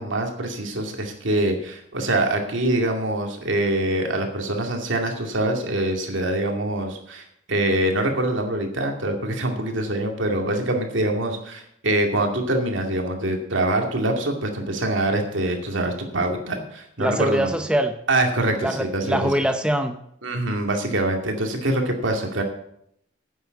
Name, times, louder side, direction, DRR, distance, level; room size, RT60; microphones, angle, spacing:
voice 1, 0.0-17.5 18.1-19.3 20.2-22.4, right 1 dB, 80° right, 3 dB, 2.3 m, -24 dB
voice 2, 17.0-17.9 18.6-20.0, right 1 dB, 5° right, 6 dB, 0.7 m, -23 dB
9.9 x 8.0 x 8.1 m, 0.72 s
head